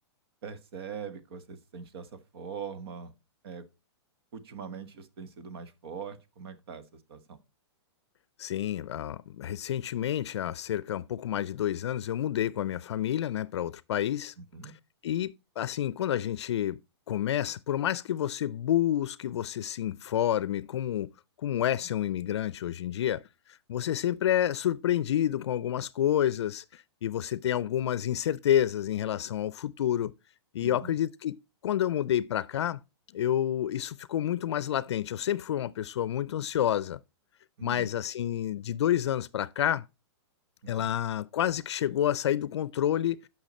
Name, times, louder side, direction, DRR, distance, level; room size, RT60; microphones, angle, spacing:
voice 1, 0.4-3.1 3.4-3.6 4.3-7.4 14.4-14.7 30.6-31.0 37.6-37.9 40.6-40.9, right 6 dB, 60° right, 1.4 m, -42 dB
voice 2, 8.4-14.3 15.0-16.8 17.1-21.1 21.4-23.2 23.7-30.1 30.5-31.4 31.6-32.8 33.1-37.0 37.6-39.8 40.7-43.2, left 11 dB, 75° left, 0.5 m, -29 dB
8.9 x 5.8 x 4.2 m
hypercardioid pair, 155°, 14 cm